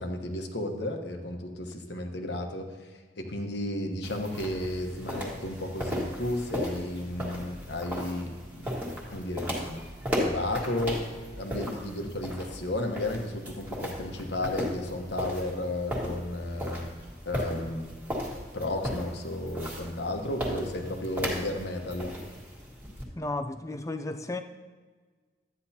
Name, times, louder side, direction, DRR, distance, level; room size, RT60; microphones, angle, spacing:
voice 1, 0.0-2.9 3.2-8.8 9.1-9.8 10.2-11.0 11.4-16.9 17.2-17.9 18.5-22.1, left 1 dB, 60° left, 1.1 m, -33 dB
sound 1, 4.0-23.0, equal, 10° right, 1.6 m, -36 dB
voice 2, 23.1-24.4, left 2 dB, 15° left, 0.4 m, -33 dB
12.0 x 9.4 x 2.8 m
head